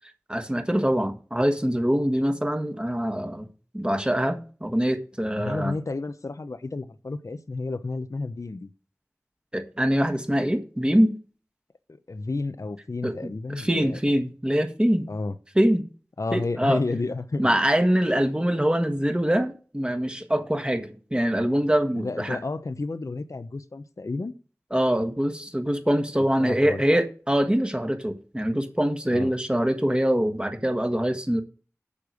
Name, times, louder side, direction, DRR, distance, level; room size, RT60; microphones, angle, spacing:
voice 1, 0.3-3.5 3.7-5.7 9.5-11.1 13.0-13.1 13.5-15.1 15.5-15.8 16.3-16.8 17.4-22.4 24.7-31.4, equal, 20° right, 1.5 m, -24 dB
voice 2, 5.4-8.7 11.9-14.0 15.1-15.3 16.2-17.5 21.9-24.3 26.4-27.0 29.1-29.3, left 3 dB, 80° left, 0.8 m, -31 dB
8.6 x 6.8 x 6.2 m
wide cardioid pair, 50°, 5 cm